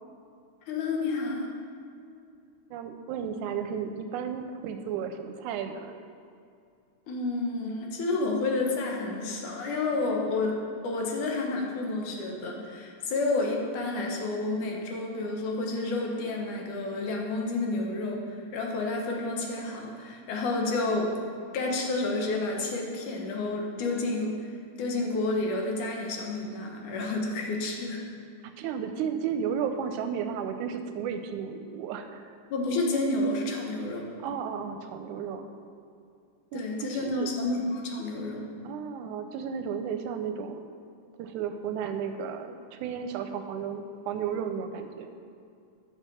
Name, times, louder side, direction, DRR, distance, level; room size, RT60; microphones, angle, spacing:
voice 1, 0.7-1.5 7.1-21.1 21.5-24.5 24.8-28.0 32.5-34.0 36.5-38.5, left 2 dB, 90° left, 0 dB, 2.8 m, -30 dB
voice 2, 2.7-6.0 28.6-32.4 34.2-35.5 36.5-37.3 38.6-40.6 41.2-45.1, right 7 dB, 90° right, 7 dB, 2.0 m, -33 dB
10.0 x 5.9 x 6.9 m, 2.5 s
omnidirectional pair, 3.4 m